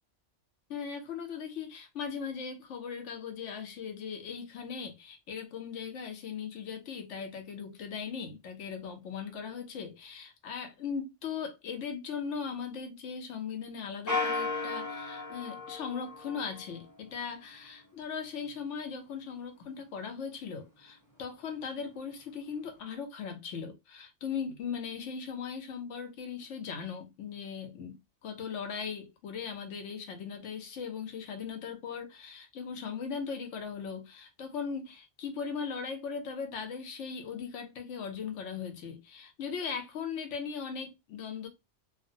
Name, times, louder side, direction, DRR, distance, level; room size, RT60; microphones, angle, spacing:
voice 1, 0.7-41.5, left 6 dB, 75° left, 1.0 m, -39 dB
sound 1, 14.1-16.8, left 4 dB, 20° left, 0.6 m, -34 dB
2.4 x 2.0 x 2.6 m
omnidirectional pair, 1.3 m